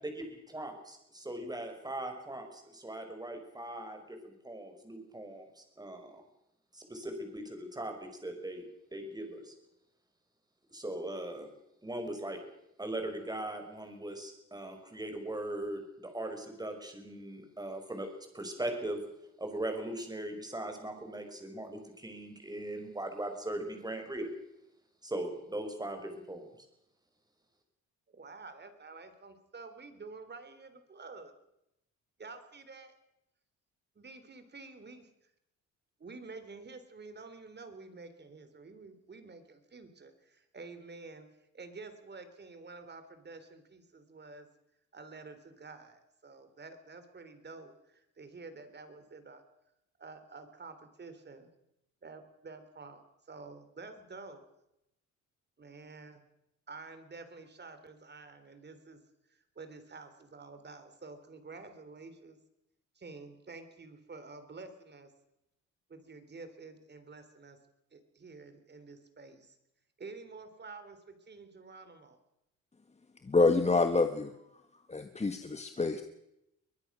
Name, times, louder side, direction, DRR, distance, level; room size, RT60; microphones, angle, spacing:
voice 1, 0.0-6.2 6.7-8.6 8.9-9.5 10.7-11.5 11.8-12.4 12.8-18.1 18.3-19.0 19.4-24.3 25.0-26.5, right 1 dB, 15° right, 5 dB, 5.6 m, -39 dB
voice 2, 28.1-31.3 32.2-32.9 34.0-35.1 36.0-41.3 41.5-44.5 44.9-49.4 50.0-51.5 52.0-53.0 53.3-54.4 55.6-56.2 56.7-59.0 59.3-62.4 63.0-65.1 65.9-67.6 67.9-69.6 70.0-72.2, right 3 dB, 35° right, 9 dB, 3.8 m, -49 dB
voice 3, 73.2-74.3 74.9-76.0, left 3 dB, 20° left, 8 dB, 1.5 m, -27 dB
23.0 x 20.0 x 6.3 m, 0.85 s
cardioid pair, 90°, 30 cm